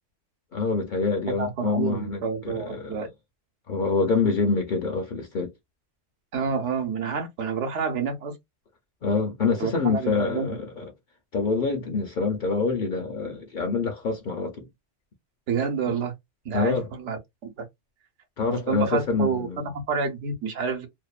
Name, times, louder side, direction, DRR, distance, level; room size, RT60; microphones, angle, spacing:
voice 1, 0.5-3.0 3.7-5.5 9.0-10.8 11.3-14.7 15.9-16.0 16.5-16.9 18.4-19.7, left 4 dB, 55° left, 0.6 m, -26 dB
voice 2, 1.4-3.1 6.3-8.3 9.6-10.6 15.5-16.1 16.4-17.6 18.7-20.9, right 5 dB, 75° right, 1.1 m, -29 dB
2.6 x 2.1 x 2.3 m
omnidirectional pair, 1.2 m